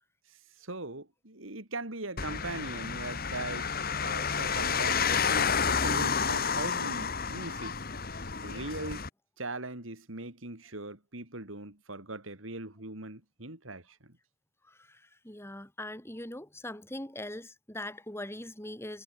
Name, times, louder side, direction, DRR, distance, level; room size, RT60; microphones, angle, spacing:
voice 1, 0.6-7.8 8.4-9.0 9.4-14.2, right 2 dB, 75° right, 4.1 m, -40 dB
sound 1, 2.2-9.1, left 6 dB, 45° left, 1.9 m, -30 dB
voice 2, 14.7-19.0, left 1 dB, 10° left, 3.0 m, -41 dB
head